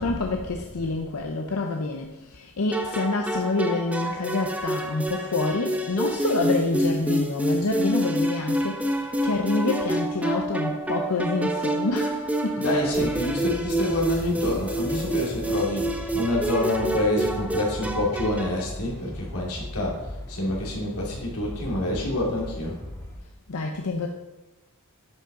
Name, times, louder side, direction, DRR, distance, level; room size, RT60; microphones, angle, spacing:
voice 1, 0.0-12.8 14.1-14.3 23.5-24.1, left 3 dB, 75° left, 3 dB, 0.7 m, -27 dB
sound 1, 2.7-18.6, right 1 dB, 5° right, 0.6 m, -28 dB
voice 2, 12.5-22.8, left 1 dB, 90° left, -3 dB, 2.6 m, -27 dB
sound 2, 12.8-23.2, left 1 dB, 15° left, 1.4 m, -38 dB
10.5 x 5.5 x 3.8 m, 1.0 s
head